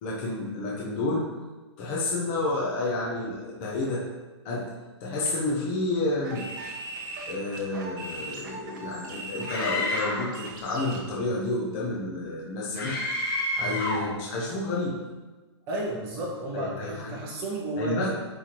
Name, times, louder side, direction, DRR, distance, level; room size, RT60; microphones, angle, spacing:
voice 1, 0.0-1.3 1.8-4.0 4.4-4.7 5.0-6.5 7.3-13.0 13.5-15.0 16.5-17.2 17.8-18.1, left 2 dB, 25° left, -5 dB, 0.9 m, -30 dB
sound 1, 6.2-11.1, right 2 dB, 45° right, 1.1 m, -39 dB
Screaming, 9.5-10.3 12.8-14.1, left 1 dB, 50° left, 1.3 m, -29 dB
voice 2, 15.7-18.1, right 1 dB, 25° right, -4 dB, 1.5 m, -33 dB
10.0 x 3.4 x 3.0 m, 1.2 s
hypercardioid pair, 165°, 15 cm